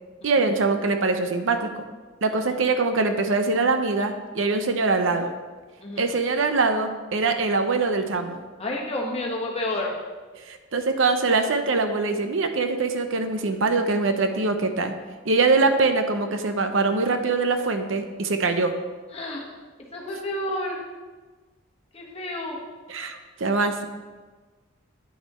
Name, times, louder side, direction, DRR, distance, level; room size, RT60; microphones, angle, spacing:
voice 1, 0.2-1.7 2.2-5.3 6.0-8.4 10.4-14.9 15.2-18.7 22.9-23.8, right 3 dB, 70° right, 7 dB, 0.7 m, -23 dB
voice 2, 5.8-6.1 8.6-9.9 19.1-19.5 19.9-20.8 21.9-22.6, left 1 dB, 30° left, -2 dB, 1.4 m, -30 dB
9.6 x 6.1 x 4.3 m, 1.3 s
head